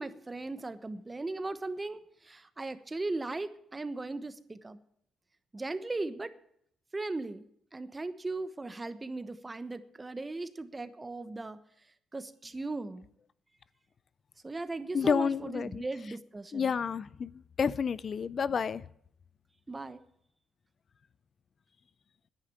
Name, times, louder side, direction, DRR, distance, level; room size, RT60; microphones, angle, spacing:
voice 1, 0.0-4.8 5.5-6.3 6.9-7.4 7.7-11.6 12.1-13.1 14.4-16.7 19.7-20.0, right 2 dB, 20° right, 12 dB, 1.1 m, -38 dB
voice 2, 14.9-15.8 16.5-18.8, left 6 dB, 45° left, 19 dB, 0.4 m, -30 dB
10.0 x 9.7 x 8.5 m, 0.68 s
cardioid pair, 90°, 0 cm